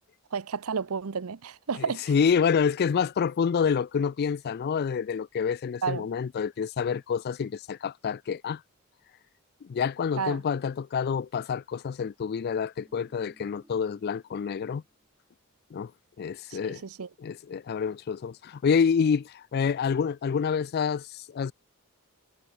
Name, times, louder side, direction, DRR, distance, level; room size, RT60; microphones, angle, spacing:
voice 1, 0.3-2.0 5.8-6.1 10.2-10.4 16.5-17.1, right 6 dB, 80° right, 0.7 m, -31 dB
voice 2, 2.1-8.6 9.6-14.8 15.7-15.9 16.2-16.8 17.2-21.5, left 6 dB, 45° left, 0.3 m, -27 dB
sound 1, 12.7-15.1 15.4-15.6, equal, 15° right, 4.8 m, -62 dB
head